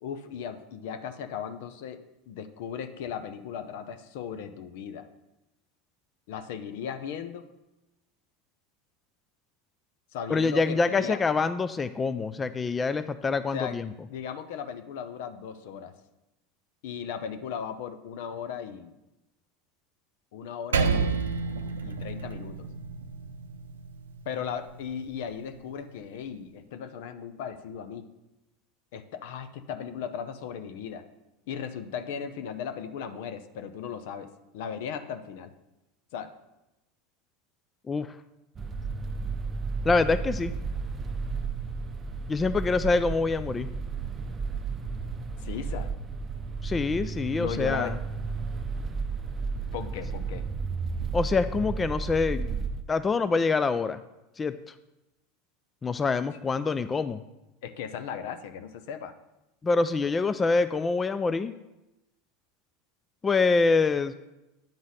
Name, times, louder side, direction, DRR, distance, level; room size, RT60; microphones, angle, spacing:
voice 1, 0.0-5.0 6.3-7.4 10.1-11.2 13.5-13.8 14.1-15.9 16.8-19.0 20.3-21.5 21.8-22.7 24.3-28.1 28.9-31.0 31.5-35.5 36.1-36.3 45.4-45.9 47.4-48.0 49.7-50.4 57.6-59.1, left 7 dB, 65° left, 9 dB, 0.7 m, -37 dB
voice 2, 10.3-13.9 37.9-38.2 39.8-40.5 42.3-43.7 46.6-48.0 51.1-52.5 52.9-54.0 54.4-54.7 55.8-57.2 59.6-61.5 63.2-64.1, left 4 dB, 20° left, 12 dB, 0.4 m, -25 dB
Percussion, 20.7-25.5, right 5 dB, 85° right, 0.6 m, -31 dB
sound 1, 38.6-52.8, right 4 dB, 25° right, 0.6 m, -33 dB
8.8 x 4.0 x 6.4 m, 0.96 s
hypercardioid pair, 90°, 0 cm